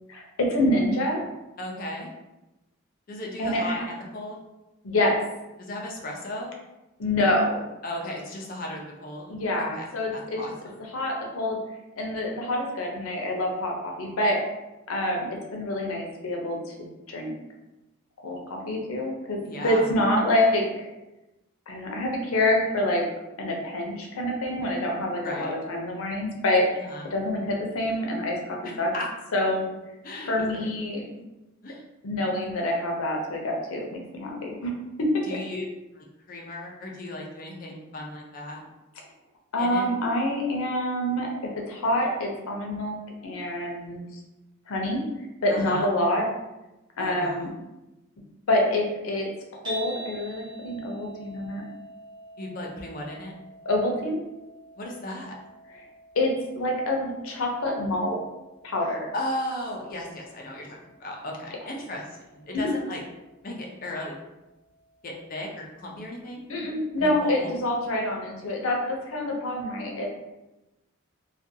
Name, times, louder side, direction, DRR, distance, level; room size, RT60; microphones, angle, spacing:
voice 1, 0.1-1.2 3.4-3.8 4.8-5.2 7.0-7.6 9.3-10.5 10.9-11.6 12.0-14.4 14.9-17.3 18.2-20.9 21.7-23.0 23.4-28.9 29.3-29.7 30.3-31.0 32.0-35.4 39.5-41.3 41.7-43.0 43.2-44.1 44.7-45.0 45.4-46.3 47.0-47.6 48.5-51.6 53.6-54.2 55.7-55.8 56.1-58.2 58.6-59.1 62.5-62.8 66.5-70.1, left 1 dB, 85° left, 1 dB, 0.6 m, -26 dB
voice 2, 1.6-2.1 3.1-4.4 5.6-6.6 7.8-9.3 9.6-9.8 10.1-10.7 19.4-19.9 25.2-25.5 26.8-27.1 28.6-29.1 30.0-30.7 31.1-31.2 31.6-31.8 35.2-35.6 36.0-38.6 39.6-39.9 45.5-45.9 47.0-47.5 52.4-53.3 54.8-55.3 59.1-62.0 62.3-63.0 63.4-64.1 65.0-66.4 67.0-67.5, left 1 dB, 40° left, -1 dB, 0.4 m, -35 dB
sound 1, 49.6-65.9, right 1 dB, 20° right, 0.6 m, -47 dB
2.4 x 2.2 x 2.6 m, 1.0 s
head